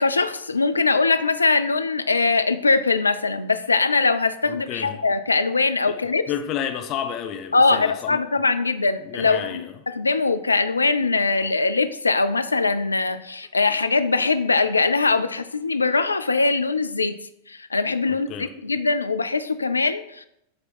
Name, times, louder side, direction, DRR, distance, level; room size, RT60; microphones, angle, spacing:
voice 1, 0.0-6.2 7.5-17.1 17.5-20.3, left 3 dB, 80° left, 10 dB, 0.3 m, -22 dB
voice 2, 4.5-5.0 5.9-6.0 6.3-8.2 9.0-9.8 18.1-18.5, left 9 dB, 35° left, 6 dB, 0.6 m, -31 dB
7.6 x 2.8 x 5.3 m, 0.81 s
figure-of-eight pair, 90°, 0 cm